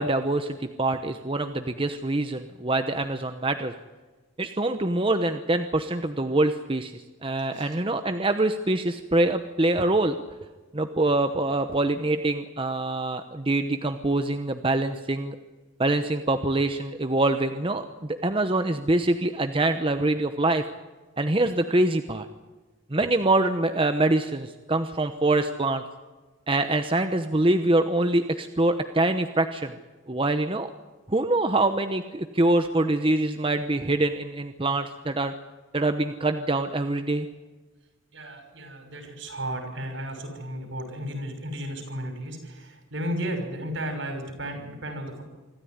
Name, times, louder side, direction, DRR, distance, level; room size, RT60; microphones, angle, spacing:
voice 1, 0.0-3.7 4.4-10.2 10.7-15.4 15.8-20.6 21.2-22.3 22.9-25.8 26.5-29.7 30.1-30.7 31.1-35.3 35.7-37.3, right 2 dB, 25° right, 8 dB, 0.9 m, -24 dB
voice 2, 38.1-45.2, equal, 70° right, 6 dB, 6.2 m, -34 dB
25.5 x 14.0 x 9.5 m, 1.3 s
head